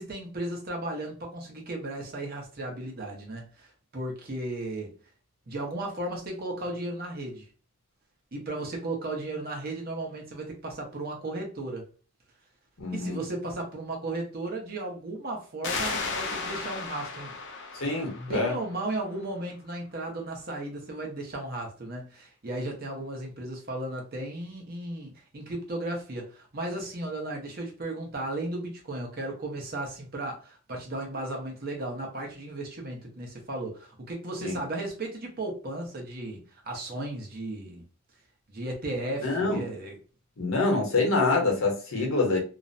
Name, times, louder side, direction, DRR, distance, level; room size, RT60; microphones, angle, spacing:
voice 1, 0.0-4.9 5.5-7.5 8.3-11.9 12.9-17.3 17.7-37.8 38.5-40.0, right 2 dB, 45° right, 0.8 m, -35 dB
voice 2, 12.8-13.2 17.8-18.5 34.4-34.6 39.2-39.6 40.4-42.4, left 3 dB, 70° left, 0.9 m, -26 dB
sound 1, 15.6-19.0, left 4 dB, 55° left, 0.4 m, -35 dB
2.5 x 2.1 x 2.5 m
head